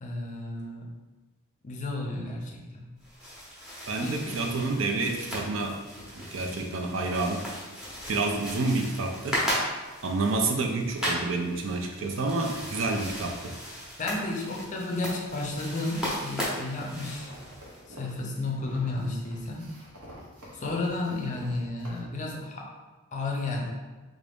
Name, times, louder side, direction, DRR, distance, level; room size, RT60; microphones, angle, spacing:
voice 1, 0.0-0.9 1.6-2.9 4.0-4.3 14.0-17.3 17.9-19.8 20.5-22.7 23.1-23.7, left 2 dB, 35° left, 0 dB, 0.5 m, -32 dB
sound 1, 3.0-17.8, equal, 5° right, 0.7 m, -36 dB
voice 2, 3.9-5.8 6.2-7.5 8.1-9.4 10.0-13.6, right 3 dB, 60° right, 3 dB, 0.4 m, -29 dB
sound 2, 16.5-22.0, equal, 80° right, 1.0 m, -49 dB
3.5 x 2.5 x 3.4 m, 1.2 s
head